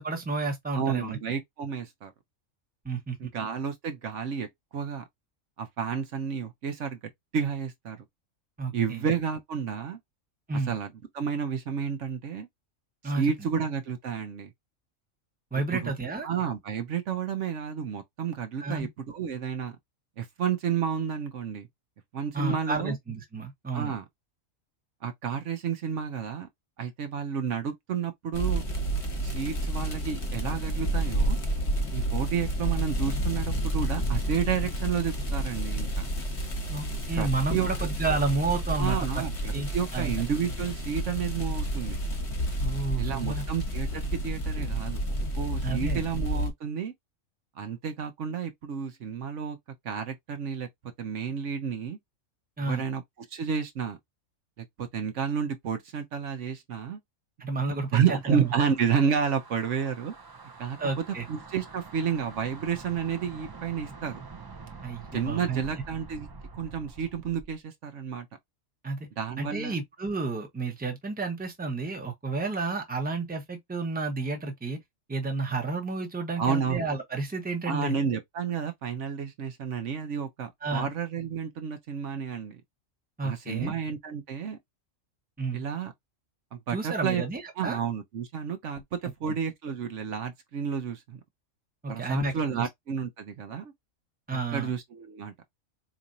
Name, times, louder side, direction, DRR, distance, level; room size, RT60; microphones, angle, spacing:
voice 1, 0.0-1.2 2.8-3.2 8.6-9.1 10.5-10.8 13.0-13.3 15.5-16.3 18.6-18.9 22.3-23.9 36.7-39.2 39.5-40.2 42.6-43.4 45.6-46.0 52.6-52.8 57.4-58.5 60.8-61.3 64.8-65.6 68.8-69.1 69.4-74.8 75.1-77.9 80.6-80.9 83.2-83.7 85.4-85.6 86.7-87.8 89.3-89.4 91.8-92.7 94.3-94.7, right 3 dB, 10° right, 0.9 m, -31 dB
voice 2, 0.7-2.1 3.2-4.5 4.7-5.0 5.6-7.0 7.3-8.0 8.7-10.0 10.7-12.5 13.0-14.5 15.7-15.9 16.2-19.8 20.2-21.7 22.1-23.0 23.7-24.0 25.0-26.5 26.8-28.6 29.2-31.4 31.9-36.1 37.2-37.7 38.8-42.0 43.0-45.0 45.3-46.9 47.6-49.6 49.8-50.7 51.0-52.0 52.6-53.0 53.3-54.0 54.6-57.0 57.9-60.1 60.6-64.2 65.1-66.3 66.6-68.3 69.2-69.8 76.4-76.8 77.7-82.6 83.2-84.6 85.5-85.9 86.5-87.2 87.6-91.2 91.9-93.7 94.3-95.3, right 7 dB, 65° right, 1.1 m, -31 dB
sound 1, 28.3-46.5, right 1 dB, 25° left, 1.0 m, -30 dB
sound 2, 57.8-67.6, right 4 dB, 30° right, 0.4 m, -46 dB
4.2 x 2.9 x 2.5 m
omnidirectional pair, 1.4 m